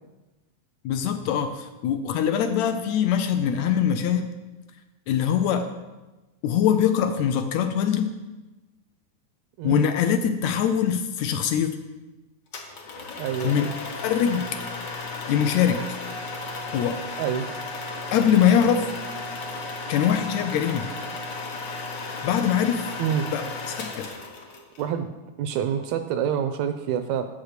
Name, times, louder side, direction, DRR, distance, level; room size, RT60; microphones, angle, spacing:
voice 1, 0.9-4.3 5.1-5.7 6.4-8.2 9.6-11.8 13.4-13.7 14.0-14.5 15.3-16.0 16.7-17.0 18.1-18.9 19.9-20.9 22.2-22.9 23.3-23.4 23.7-24.2, left 8 dB, 80° left, 8 dB, 1.8 m, -23 dB
voice 2, 9.6-9.9 13.2-13.7 17.2-17.5 23.0-23.3 24.8-25.1 25.4-27.3, right 8 dB, 80° right, 8 dB, 1.7 m, -27 dB
sound 1, 12.5-24.8, left 3 dB, 60° left, 1.1 m, -34 dB
7.1 x 6.3 x 6.6 m, 1.1 s
omnidirectional pair, 3.4 m